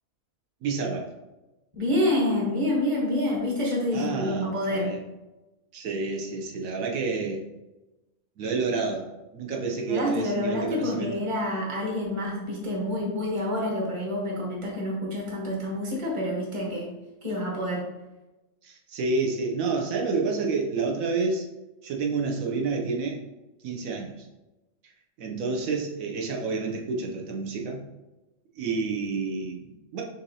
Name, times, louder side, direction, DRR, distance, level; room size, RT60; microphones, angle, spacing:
voice 1, 0.6-1.1 3.9-5.0 5.7-7.4 8.4-9.1 9.3-11.2 18.6-21.5 21.8-23.2 23.6-24.3 25.2-27.8 28.6-30.0, right 4 dB, 80° right, 0 dB, 1.1 m, -29 dB
voice 2, 1.7-4.9 9.9-16.9 17.2-17.9, left 1 dB, 25° right, -3 dB, 1.0 m, -27 dB
6.8 x 2.7 x 2.7 m, 1.0 s
omnidirectional pair, 1.4 m